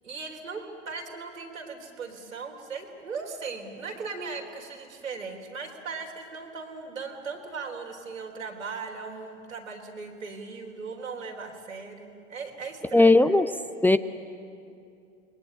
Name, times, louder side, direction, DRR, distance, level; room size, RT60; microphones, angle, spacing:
voice 1, 0.0-13.3, right 4 dB, 85° right, 1 dB, 4.0 m, -38 dB
voice 2, 12.9-13.5 13.8-14.0, left 2 dB, 5° left, 11 dB, 0.7 m, -17 dB
28.5 x 21.5 x 8.9 m, 2.5 s
figure-of-eight pair, 90°, 39 cm